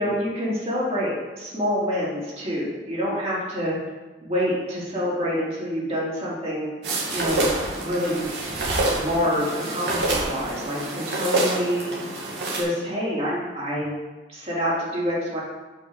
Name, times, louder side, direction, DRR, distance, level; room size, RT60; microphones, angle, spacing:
voice 1, 0.0-3.8 4.2-6.7 7.1-7.5 7.8-8.3 8.9-11.9 12.5-13.9 14.3-15.4, equal, 35° right, -7 dB, 3.8 m, -26 dB
sound 1, 6.8-12.6, right 2 dB, 75° right, 2.5 m, -27 dB
8.3 x 5.8 x 7.5 m, 1.2 s
head